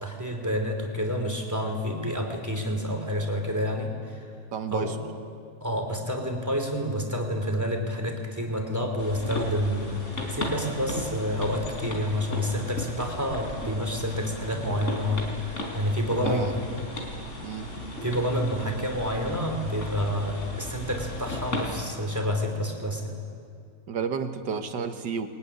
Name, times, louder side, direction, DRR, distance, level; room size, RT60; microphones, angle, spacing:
voice 1, 0.0-4.3 4.7-5.0 5.6-16.6 18.0-23.2, equal, 10° right, 3 dB, 3.1 m, -29 dB
voice 2, 4.5-5.0 16.2-16.5 17.4-17.7 23.9-25.3, right 6 dB, 85° right, 7 dB, 2.0 m, -31 dB
sound 1, 9.0-21.8, left 1 dB, 45° left, 4.5 m, -35 dB
21.5 x 20.5 x 9.9 m, 2.4 s
omnidirectional pair, 1.8 m